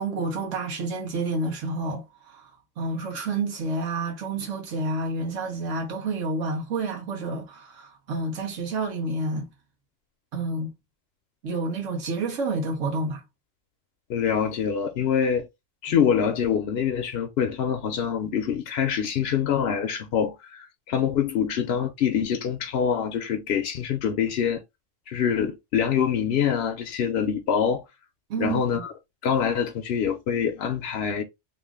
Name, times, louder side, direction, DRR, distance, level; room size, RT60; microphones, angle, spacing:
voice 1, 0.0-2.5 2.8-9.5 10.3-10.7 11.4-13.2 28.3-28.8, right 2 dB, 85° right, 1.3 m, -29 dB
voice 2, 14.1-15.5 15.8-24.6 25.1-27.8 28.4-28.9 29.2-31.2, left 8 dB, 65° left, 0.7 m, -25 dB
3.0 x 2.5 x 3.4 m
omnidirectional pair, 1.3 m